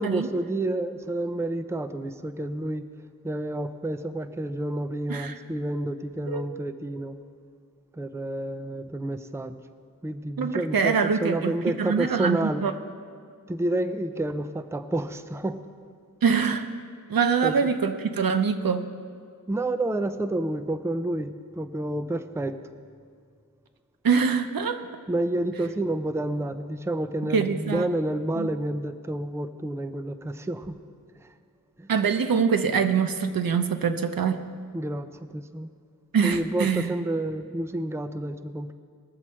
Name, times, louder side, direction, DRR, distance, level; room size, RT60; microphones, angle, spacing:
voice 1, 0.0-2.9 3.2-7.2 7.9-9.6 10.0-12.6 13.5-15.6 17.4-17.7 19.5-22.6 25.1-30.8 31.2-31.3 31.8-31.9 34.7-35.7 36.2-38.7, right 1 dB, 10° right, 10 dB, 0.5 m, -29 dB
voice 2, 10.4-11.5 11.8-12.7 16.2-16.7 17.1-18.9 24.0-24.8 27.3-27.8 28.4-28.5 31.9-34.4 36.1-36.9, right 6 dB, 75° right, 8 dB, 0.8 m, -24 dB
20.0 x 7.3 x 4.4 m, 2.1 s
wide cardioid pair, 80°, 35 cm